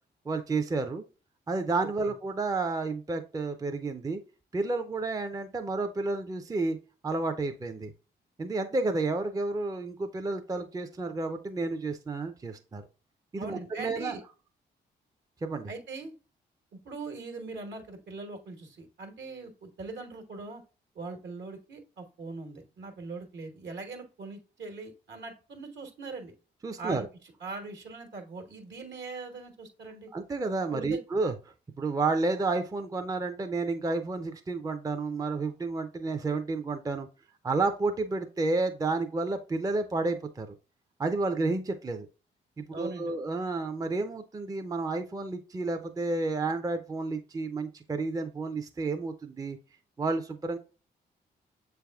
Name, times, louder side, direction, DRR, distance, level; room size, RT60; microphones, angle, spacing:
voice 1, 0.3-1.0 1.5-4.2 4.5-6.8 7.0-7.9 8.4-12.8 13.3-14.2 15.4-15.7 26.6-27.1 30.1-31.3 31.8-37.1 37.4-40.6 41.0-42.1 42.6-49.6 50.0-50.6, right 3 dB, 20° right, 7 dB, 0.4 m, -31 dB
voice 2, 13.4-14.2 15.7-16.1 16.7-20.6 20.9-26.3 26.8-27.1 27.4-30.1 30.7-31.0 42.7-43.1, right 3 dB, 65° right, 4 dB, 1.2 m, -41 dB
6.6 x 3.4 x 2.3 m, 0.34 s
supercardioid pair, 55°, 20 cm